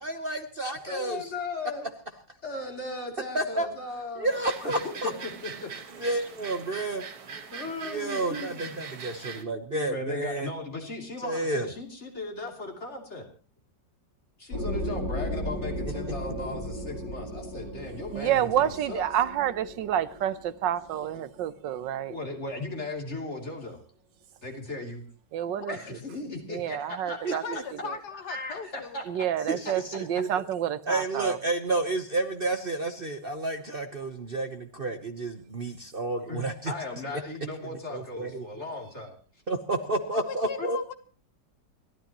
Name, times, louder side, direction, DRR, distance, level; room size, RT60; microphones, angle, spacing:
voice 1, 0.0-1.3 3.3-3.7 4.2-5.1 6.0-7.0 7.8-10.5 11.2-11.7 27.2-27.6 29.5-30.4 30.9-36.7 37.9-38.4 39.5-40.8, right 2 dB, 35° right, 1.0 m, -30 dB
voice 2, 0.9-1.9 2.4-4.3 4.6-4.7 5.0-5.7 7.5-8.7 9.9-13.3 14.4-19.0 22.1-23.8 24.4-25.0 25.7-27.4 28.3-29.3 36.3-39.2 40.6-40.7, left 2 dB, 40° left, 3.3 m, -37 dB
sound 1, 4.3-9.4, right 6 dB, 60° right, 1.9 m, -41 dB
sound 2, 14.5-21.9, equal, 90° left, 4.6 m, -36 dB
voice 3, 18.1-22.2 25.3-26.0 26.5-27.4 27.8-27.9 29.1-31.4, right 10 dB, 85° right, 1.6 m, -29 dB
voice 4, 25.5-25.9 27.3-29.0 40.1-40.9, left 6 dB, 65° left, 1.8 m, -39 dB
29.5 x 12.5 x 3.0 m
omnidirectional pair, 1.9 m